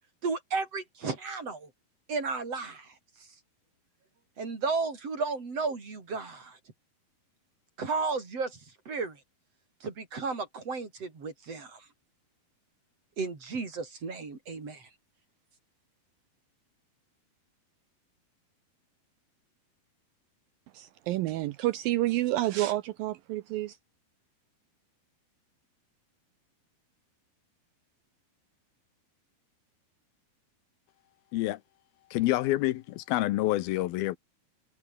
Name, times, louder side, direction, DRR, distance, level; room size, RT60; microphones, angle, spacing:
voice 1, 0.2-1.7 2.1-2.9 4.4-6.6 7.8-8.6 8.9-9.2 9.8-11.8 13.2-14.9, right 4 dB, 40° right, 5.4 m, -33 dB
voice 2, 20.7-23.8, right 16 dB, 75° right, 2.4 m, -29 dB
voice 3, 32.1-34.2, left 16 dB, 80° left, 2.7 m, -27 dB
omnidirectional pair, 4.5 m